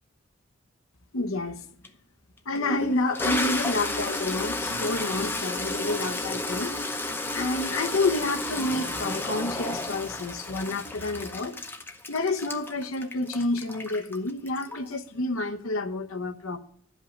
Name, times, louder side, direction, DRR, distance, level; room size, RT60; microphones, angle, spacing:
voice 1, 1.1-1.6 2.5-6.7 7.3-11.6 12.1-16.6, left 2 dB, 85° left, 0.9 m, -29 dB
Toilet flush, 1.8-1.9 2.6-15.0, left 2 dB, 10° left, 0.8 m, -32 dB
12.0 x 5.5 x 8.4 m
head